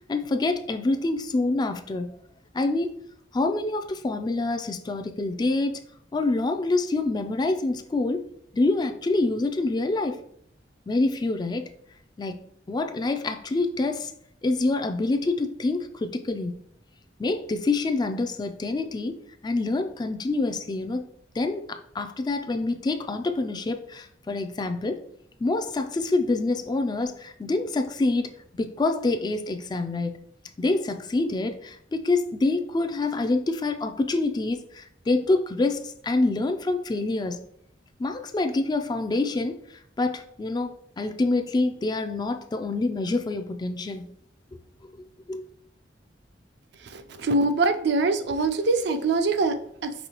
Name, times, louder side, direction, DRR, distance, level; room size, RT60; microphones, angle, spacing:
voice 1, 0.1-2.1 2.5-2.9 3.3-5.8 6.1-8.3 8.5-10.2 10.9-11.7 12.2-12.4 12.7-14.1 14.4-16.6 17.2-19.2 19.4-21.1 21.4-25.0 25.4-28.3 28.6-30.2 30.6-37.4 38.0-39.6 40.0-44.1 44.8-45.4, left 2 dB, 25° left, 0.3 m, -26 dB
voice 2, 46.8-49.9, right 3 dB, 65° right, 0.4 m, -24 dB
5.4 x 3.2 x 2.9 m
head